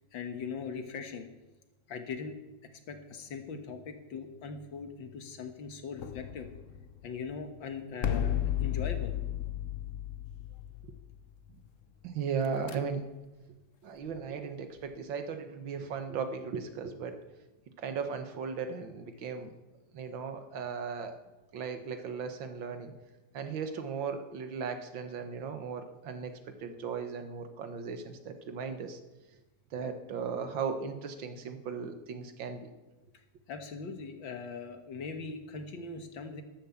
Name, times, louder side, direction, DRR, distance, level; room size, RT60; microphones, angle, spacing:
voice 1, 0.1-1.3 1.9-2.4 2.7-6.5 7.0-9.1 33.5-36.4, left 5 dB, 80° left, 6 dB, 2.1 m, -40 dB
sound 1, 6.0-7.3 8.0-11.3 12.4-12.8, left 10 dB, 55° left, 1.0 m, -33 dB
voice 2, 12.0-13.0 13.8-17.2 17.8-19.5 19.9-21.2 21.5-22.9 23.3-29.0 29.7-32.7, right 6 dB, 85° right, 8 dB, 2.0 m, -37 dB
12.5 x 12.0 x 7.1 m, 1.1 s
omnidirectional pair, 2.0 m